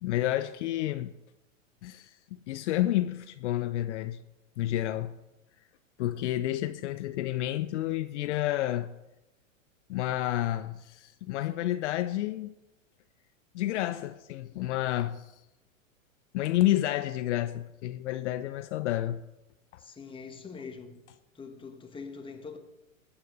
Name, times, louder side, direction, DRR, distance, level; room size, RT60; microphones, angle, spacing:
voice 1, 0.0-1.1 1.8-4.2 4.6-5.2 6.0-8.9 9.9-12.5 13.5-15.3 16.3-19.2, left 14 dB, 60° left, 0.6 m, -30 dB
voice 2, 19.8-21.0 21.3-22.6, left 5 dB, 15° left, 1.4 m, -43 dB
15.5 x 9.0 x 3.9 m
hypercardioid pair, 105°, 40 cm